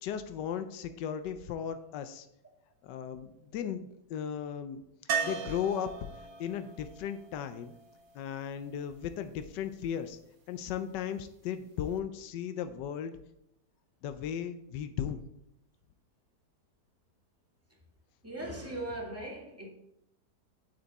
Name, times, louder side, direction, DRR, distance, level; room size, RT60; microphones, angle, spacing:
voice 1, 0.0-2.3 2.8-4.8 5.2-5.9 6.4-7.7 8.1-10.2 10.5-13.1 14.0-15.2, left 8 dB, 85° left, 9 dB, 1.3 m, -36 dB
sound 1, 5.1-9.0 11.6-11.7 12.0-12.1, right 6 dB, 85° right, 1.8 m, -38 dB
voice 2, 18.2-19.7, right 1 dB, 10° right, -3 dB, 2.1 m, -39 dB
8.1 x 7.9 x 4.1 m, 0.81 s
omnidirectional pair, 1.8 m